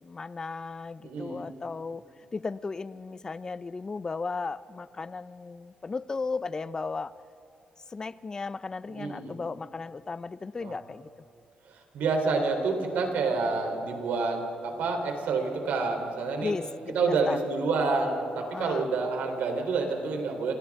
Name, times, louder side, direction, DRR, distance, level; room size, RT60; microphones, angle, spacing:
voice 1, 0.0-2.0 2.3-7.1 7.9-11.1 16.4-17.4 18.5-18.9, left 4 dB, 25° left, 16 dB, 0.4 m, -35 dB
voice 2, 1.0-1.5 8.9-9.4 10.6-10.8 11.7-16.5 16.9-20.5, right 4 dB, 85° right, 3 dB, 3.4 m, -28 dB
29.0 x 27.5 x 3.6 m, 2.7 s
cardioid pair, 140°, 3 cm